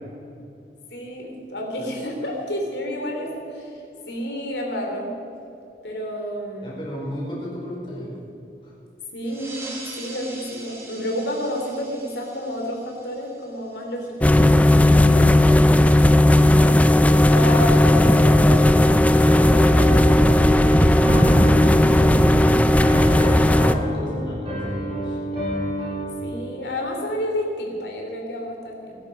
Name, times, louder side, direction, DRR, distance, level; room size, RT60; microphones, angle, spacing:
voice 1, 0.9-3.8 4.1-5.1 5.8-6.8 9.1-14.8 17.1-19.2 26.2-29.0, equal, 85° left, 1 dB, 3.5 m, -30 dB
voice 2, 6.6-8.1 8.6-8.7 15.1-16.3 19.1-22.5 23.3-25.4, left 1 dB, 30° left, -4 dB, 5.0 m, -34 dB
sound 1, 9.2-14.3, right 2 dB, 15° right, 1.7 m, -42 dB
sound 2, 14.2-23.7, left 1 dB, 10° left, 0.4 m, -15 dB
Piano, 19.4-26.2, equal, 30° right, 4.4 m, -28 dB
20.5 x 12.0 x 5.4 m, 2.6 s
head